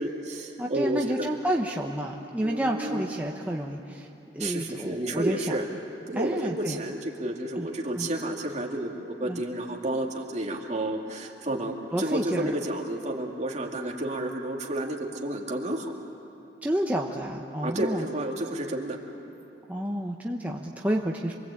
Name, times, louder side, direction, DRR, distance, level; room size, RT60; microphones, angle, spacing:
voice 1, 0.0-1.3 2.4-3.1 4.4-5.7 6.1-15.9 17.6-19.0, right 1 dB, 40° right, 0 dB, 2.6 m, -31 dB
voice 2, 0.6-4.1 4.3-5.6 6.2-6.8 7.6-7.7 8.0-8.1 9.3-9.4 11.9-12.5 16.6-18.1 19.7-21.3, right 1 dB, 10° right, 0 dB, 1.0 m, -30 dB
27.5 x 22.5 x 8.6 m, 2.9 s
head